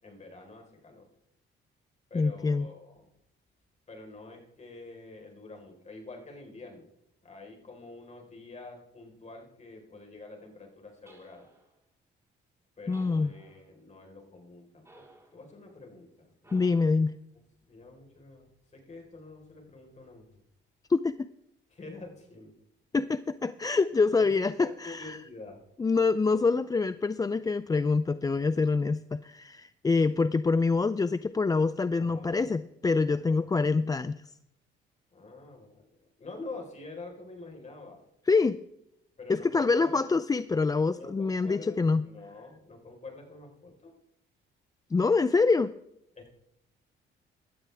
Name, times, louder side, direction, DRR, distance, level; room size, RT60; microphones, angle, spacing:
voice 1, 0.0-1.1 2.1-3.1 3.9-6.9 7.2-11.5 12.8-15.0 15.3-16.5 17.7-20.4 21.7-22.5 24.1-25.6 31.9-32.6 33.1-33.5 35.1-38.0 39.2-40.0 40.9-43.9 46.2-46.3, left 3 dB, 35° left, 2 dB, 4.4 m, -47 dB
voice 2, 2.1-2.7 12.9-13.3 16.5-17.2 20.9-21.3 22.9-25.2 25.8-34.2 38.3-38.6 39.3-42.0 44.9-45.7, left 4 dB, 20° left, 14 dB, 0.4 m, -26 dB
sound 1, 11.1-11.8 12.9-13.7 14.8-15.4 16.4-17.1, right 2 dB, 15° right, 3.9 m, -58 dB
16.5 x 12.5 x 3.5 m, 0.80 s
cardioid pair, 90°, 20 cm